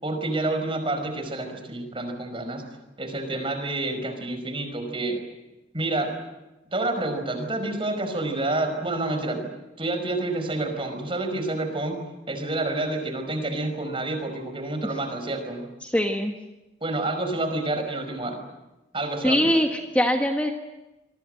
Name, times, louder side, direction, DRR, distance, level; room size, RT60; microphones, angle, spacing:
voice 1, 0.0-2.6 3.0-5.2 5.7-6.1 6.7-9.5 9.8-12.0 12.3-15.6 16.8-18.4 18.9-19.5, right 2 dB, 30° right, 6 dB, 5.1 m, -28 dB
voice 2, 15.8-16.3 19.2-20.5, equal, 10° left, 2 dB, 1.5 m, -22 dB
27.0 x 23.0 x 7.8 m, 1.0 s
head